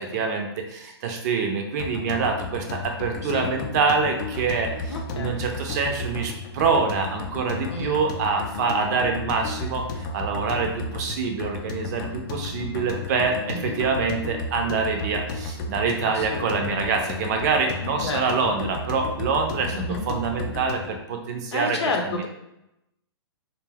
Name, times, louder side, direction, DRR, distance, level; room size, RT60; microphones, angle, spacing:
voice 1, 0.0-19.7 20.1-21.8 22.0-22.2, right 5 dB, 40° right, 3 dB, 0.5 m, -26 dB
sound 1, 1.8-21.0, left 3 dB, 45° left, 0.4 m, -33 dB
voice 2, 4.9-5.4 7.7-8.0 13.5-13.8 16.0-16.9 18.0-18.6 19.7-20.1 21.5-22.3, left 3 dB, 85° left, 2 dB, 0.7 m, -31 dB
2.6 x 2.1 x 3.4 m, 0.85 s
hypercardioid pair, 140°, 14 cm